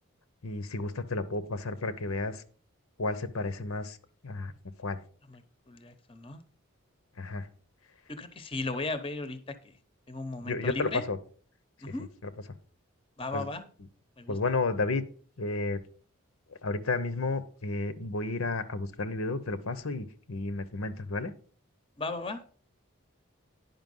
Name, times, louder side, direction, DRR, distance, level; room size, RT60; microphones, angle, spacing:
voice 1, 0.4-2.4 3.0-4.0 4.2-4.5 4.8-5.0 7.2-7.5 10.4-11.2 13.3-13.4 14.3-15.0 15.4-15.8 16.6-21.3, left 3 dB, 85° left, 13 dB, 0.9 m, -32 dB
voice 2, 5.3-6.4 8.1-9.8 10.1-11.1 11.8-12.1 13.2-13.6 14.2-14.4 22.0-22.4, left 3 dB, 25° left, 11 dB, 0.8 m, -36 dB
10.5 x 5.7 x 5.5 m, 0.43 s
head